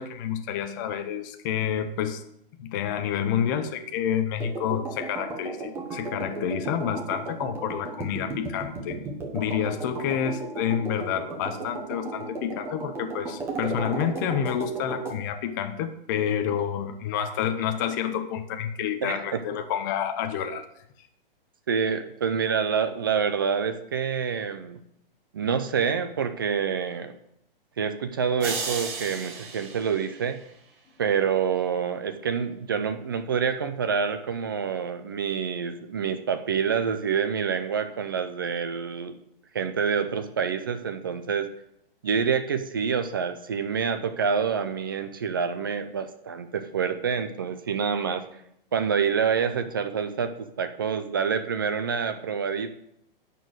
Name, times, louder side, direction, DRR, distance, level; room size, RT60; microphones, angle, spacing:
voice 1, 0.0-2.2 2.6-9.0 9.3-20.6, left 8 dB, 20° left, 7 dB, 0.6 m, -29 dB
sound 1, 4.4-15.2, right 3 dB, 10° right, 1.0 m, -35 dB
voice 2, 19.0-19.4 21.7-24.8 25.3-27.1 27.8-30.4 31.0-39.1 39.5-41.5 42.0-48.3 48.7-52.7, right 6 dB, 25° right, 10 dB, 0.4 m, -27 dB
sound 2, 28.4-30.7, right 5 dB, 65° right, 4.1 m, -35 dB
11.0 x 4.5 x 7.7 m, 0.77 s
hypercardioid pair, 165°, 29 cm